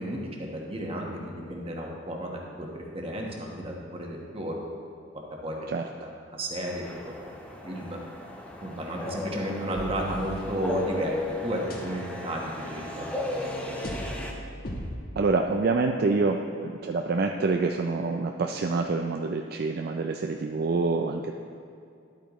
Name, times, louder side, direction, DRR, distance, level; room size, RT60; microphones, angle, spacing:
voice 1, 0.0-4.6 5.4-5.7 6.4-6.8 7.6-8.0 8.6-11.2 11.4-13.1 13.7-13.8, right 1 dB, 30° right, -1 dB, 1.2 m, -33 dB
sound 1, 6.6-14.3, left 2 dB, 5° left, 0.7 m, -36 dB
sound 2, 9.7-11.1 11.4-14.9, equal, 50° left, 1.2 m, -40 dB
voice 2, 15.2-21.3, right 3 dB, 55° right, 3 dB, 0.4 m, -26 dB
11.0 x 8.5 x 3.1 m, 2.5 s
head